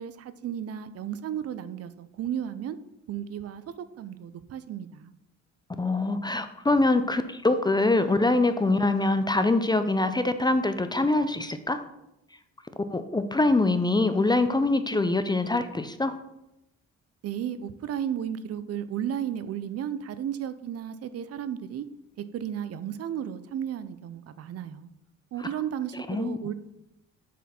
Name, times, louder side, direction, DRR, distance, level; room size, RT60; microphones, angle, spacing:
voice 1, 0.0-2.8 3.1-5.1 17.2-21.9 22.3-24.9 25.3-26.5, right 9 dB, 55° right, 14 dB, 0.5 m, -34 dB
voice 2, 5.8-11.8 12.9-16.2 26.1-26.4, left 2 dB, 15° left, 10 dB, 0.4 m, -24 dB
7.3 x 4.1 x 4.3 m, 0.88 s
cardioid pair, 90°, 30 cm